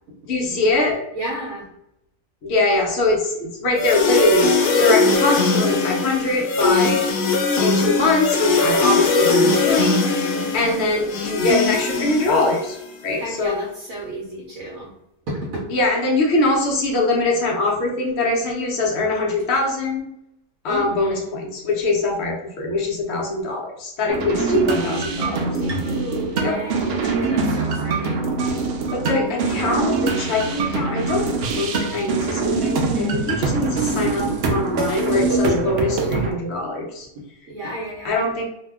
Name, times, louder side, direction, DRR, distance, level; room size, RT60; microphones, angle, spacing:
voice 1, 0.3-1.0 2.4-7.0 7.6-12.8 13.0-13.6 15.7-20.1 20.6-25.4 26.4-26.6 28.9-31.3 31.5-37.1 38.0-38.5, left 2 dB, 60° left, 0 dB, 0.7 m, -22 dB
voice 2, 1.1-1.7 6.6-7.0 10.3-10.8 13.1-14.9 15.3-15.7 20.7-21.3 24.1-28.3 37.1-38.2, right 3 dB, 70° right, -4 dB, 1.0 m, -31 dB
sound 1, 3.8-12.9, left 4 dB, 80° left, 1.1 m, -20 dB
sound 2, 24.1-36.3, right 3 dB, 90° right, 0.5 m, -23 dB
2.8 x 2.1 x 3.4 m, 0.79 s
omnidirectional pair, 1.6 m